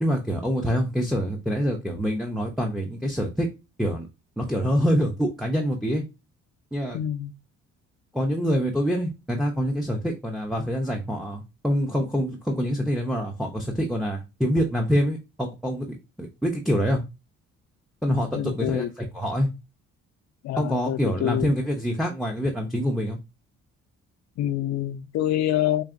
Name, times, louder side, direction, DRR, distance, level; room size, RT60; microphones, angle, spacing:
voice 1, 0.0-3.5 3.8-4.1 4.4-6.0 6.7-7.0 8.1-17.0 18.0-19.5 20.6-23.2, equal, ahead, 0.6 m, -26 dB
voice 2, 6.9-7.3 18.3-18.9 20.4-21.5 24.4-25.8, left 12 dB, 65° left, 0.5 m, -26 dB
4.7 x 2.6 x 2.5 m
cardioid pair, 90°, 30 cm